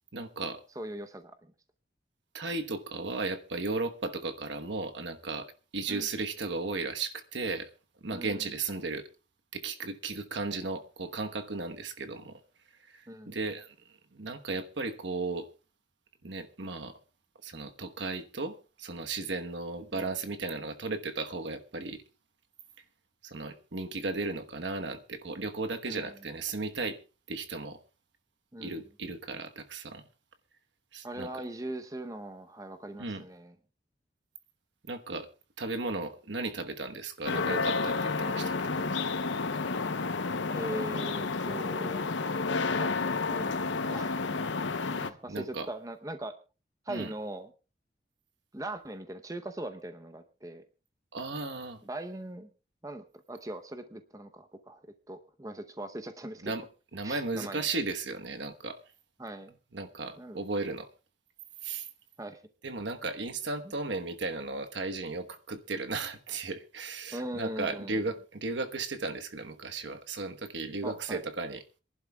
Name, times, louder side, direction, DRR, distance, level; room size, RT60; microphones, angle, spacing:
voice 1, 0.1-0.6 2.3-7.7 8.0-9.1 9.5-12.3 12.9-15.5 16.2-17.0 17.4-22.0 23.2-27.0 27.3-27.8 28.6-30.0 30.9-31.3 33.0-33.2 34.8-35.3 35.6-38.8 45.3-45.7 46.9-47.1 51.1-51.8 56.4-56.6 56.9-58.8 59.7-60.9 61.6-61.9 62.6-71.6, right 3 dB, 80° right, 1.2 m, -35 dB
voice 2, 0.8-1.3 5.9-6.1 8.1-8.5 13.1-13.4 19.9-20.0 25.9-26.2 28.5-28.8 31.0-33.5 40.5-42.1 42.8-43.0 43.3-43.6 43.9-44.3 44.9-46.3 46.9-47.5 48.5-50.6 51.8-52.5 52.8-56.5 57.0-57.7 59.2-59.5 60.2-60.4 62.2-62.4 67.1-68.1 70.8-71.3, right 1 dB, 20° right, 0.8 m, -40 dB
sound 1, 37.3-45.1, left 4 dB, 85° left, 0.8 m, -30 dB
27.0 x 11.0 x 2.3 m
head